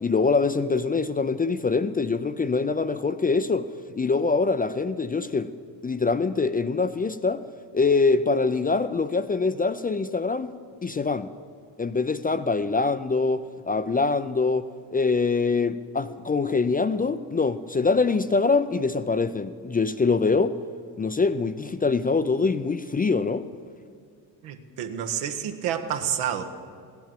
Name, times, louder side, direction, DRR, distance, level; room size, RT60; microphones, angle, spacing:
voice 1, 0.0-3.7 4.0-5.5 5.8-7.4 7.7-10.5 10.8-11.3 11.8-20.6 21.0-23.5, left 4 dB, 20° left, 11 dB, 0.5 m, -24 dB
voice 2, 24.4-26.4, right 9 dB, 75° right, 6 dB, 1.4 m, -29 dB
16.0 x 10.5 x 7.7 m, 2.2 s
supercardioid pair, 70°, 49 cm